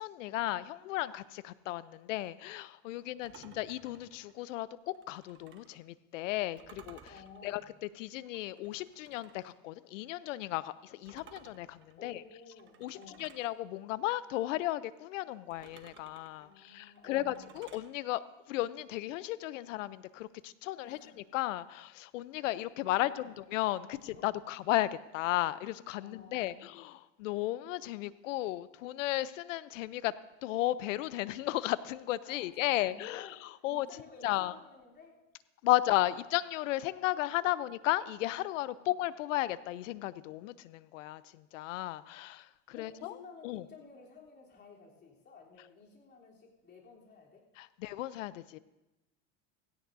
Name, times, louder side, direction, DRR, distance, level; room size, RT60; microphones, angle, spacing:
voice 1, 0.0-7.1 7.4-7.6 8.0-12.2 12.8-18.2 18.5-30.1 30.4-33.9 34.2-34.5 35.6-43.2 43.4-43.6 47.6-48.6, left 15 dB, 85° left, 17 dB, 0.7 m, -34 dB
voice 2, 3.0-3.7 7.1-7.7 12.0-13.4 16.4-17.6 20.8-21.1 22.8-23.4 23.8-24.4 26.0-26.9 32.2-33.3 33.7-35.2 37.6-37.7 38.7-38.9 42.7-47.4, left 5 dB, 30° left, -3 dB, 3.4 m, -54 dB
sound 1, 3.2-5.8 6.6-9.6 11.1-13.5 15.5-17.9, right 7 dB, 30° right, 1.3 m, -58 dB
16.5 x 16.5 x 2.7 m, 1.0 s
supercardioid pair, 125°, 37 cm